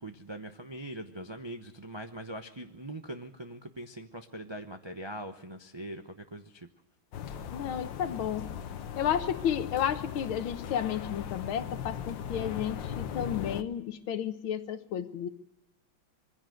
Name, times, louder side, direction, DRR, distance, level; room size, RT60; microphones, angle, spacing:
voice 1, 0.0-6.7, right 1 dB, 30° right, 5 dB, 0.5 m, -42 dB
sound 1, 7.1-13.6, left 8 dB, 70° left, 1.7 m, -38 dB
voice 2, 7.5-8.5 9.0-15.3, left 9 dB, 90° left, 9 dB, 1.8 m, -32 dB
22.5 x 15.5 x 7.8 m, 0.93 s
omnidirectional pair, 2.2 m